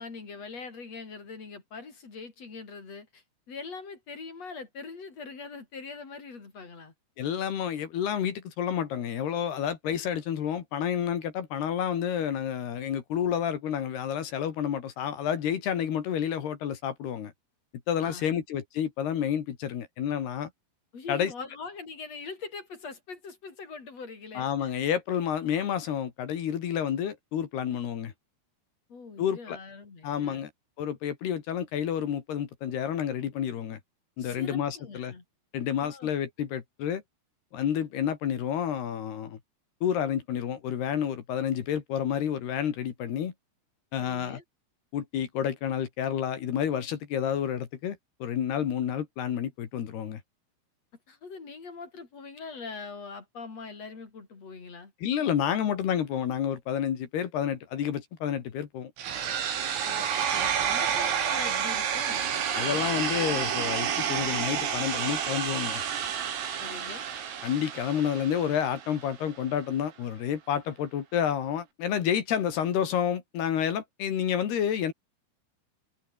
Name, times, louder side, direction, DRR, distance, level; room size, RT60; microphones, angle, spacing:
voice 1, 0.0-6.9 18.0-18.4 20.9-24.7 28.9-30.5 34.2-35.2 35.8-36.1 44.0-44.4 51.1-54.9 59.8-62.3 66.6-67.1, left 4 dB, 35° left, 5.2 m, -42 dB
voice 2, 7.2-17.3 17.9-20.5 21.1-21.3 24.3-28.1 29.2-29.6 30.0-30.5 30.8-33.8 34.2-35.1 35.5-37.0 37.5-39.4 39.8-43.3 43.9-44.4 44.9-50.2 55.0-58.9 62.5-65.8 67.4-74.9, left 9 dB, 60° left, 3.9 m, -29 dB
sound 1, 59.0-69.0, right 8 dB, 80° right, 6.6 m, -30 dB
omnidirectional pair, 5.9 m